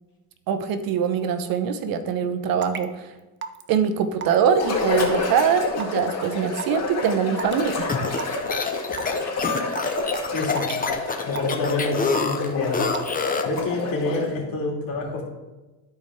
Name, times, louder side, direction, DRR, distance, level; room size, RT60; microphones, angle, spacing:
voice 1, 0.5-3.1 3.7-7.9, right 7 dB, 70° right, 10 dB, 0.9 m, -23 dB
Raindrop / Water tap faucet / Drip, 2.6-2.8 3.4-3.7 4.2-4.5 5.0-5.3 5.8-6.0 6.6-6.8 7.4-7.6 8.1-8.3 9.0-9.2 9.8-10.0 10.6-10.8 11.3-11.7 12.1-12.5 12.9-13.2, right 7 dB, 30° right, 0.6 m, -33 dB
sound 1, 4.5-14.4, left 3 dB, 45° left, 2.1 m, -29 dB
sound 2, 7.7-13.6, left 4 dB, 25° left, 0.9 m, -27 dB
voice 2, 10.3-10.7 11.3-12.8 13.4-15.2, left 3 dB, 65° left, -1 dB, 2.6 m, -27 dB
13.5 x 4.6 x 3.6 m, 1.1 s
cardioid pair, 110°, 37 cm